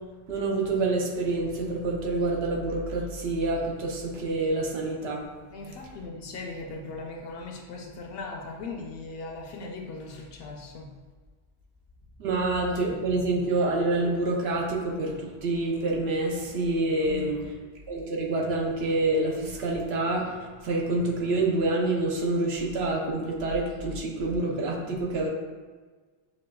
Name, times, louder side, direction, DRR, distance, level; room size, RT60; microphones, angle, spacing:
voice 1, 0.3-5.2 5.6-5.9 12.2-17.4 17.9-25.3, right 2 dB, 80° right, -2 dB, 0.9 m, -27 dB
voice 2, 5.5-11.0 17.0-17.4, left 3 dB, 70° left, 1 dB, 0.8 m, -39 dB
6.1 x 2.3 x 2.2 m, 1.4 s
omnidirectional pair, 1.0 m